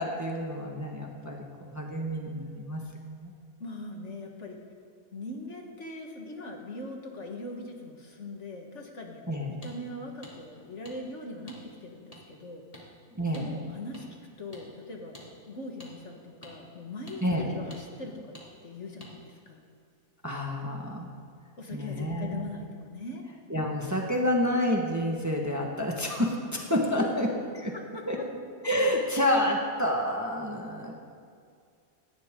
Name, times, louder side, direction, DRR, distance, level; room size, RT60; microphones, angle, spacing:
voice 1, 0.0-2.8 3.1-3.3 9.3-9.6 13.1-13.6 17.2-17.5 20.2-21.1 21.7-22.4 23.5-27.3 27.5-27.7 28.1-28.2 28.6-30.9, left 1 dB, 10° right, 0 dB, 1.4 m, -29 dB
voice 2, 3.6-4.6 5.1-12.9 13.3-14.1 14.4-18.3 18.6-19.6 21.6-23.2 26.9-27.1 27.7-28.0, left 2 dB, 50° left, 1 dB, 1.8 m, -41 dB
sound 1, 9.6-9.7 10.2-10.3 10.8-11.0 11.5-11.6 12.1-12.2 12.7-12.9 13.3-13.5 13.9-14.0 14.5-14.6 15.1-15.3 15.8-15.9 16.4-16.5 17.1-17.2 17.7-17.8 18.3-18.5 19.0-19.1, left 1 dB, 25° left, 2.7 m, -48 dB
18.5 x 15.5 x 3.8 m, 2.2 s
omnidirectional pair, 1.6 m